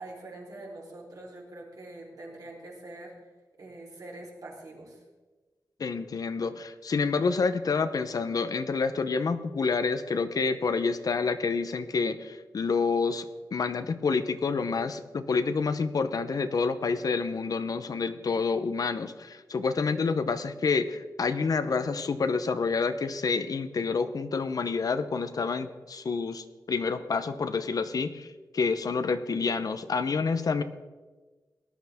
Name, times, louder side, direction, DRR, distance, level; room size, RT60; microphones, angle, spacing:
voice 1, 0.0-3.1 3.6-5.0, right 2 dB, 60° right, -2 dB, 3.9 m, -44 dB
voice 2, 5.8-13.3 13.5-30.6, left 4 dB, 60° left, 11 dB, 0.7 m, -28 dB
18.5 x 11.5 x 3.6 m, 1.3 s
wide cardioid pair, 145°, 7 cm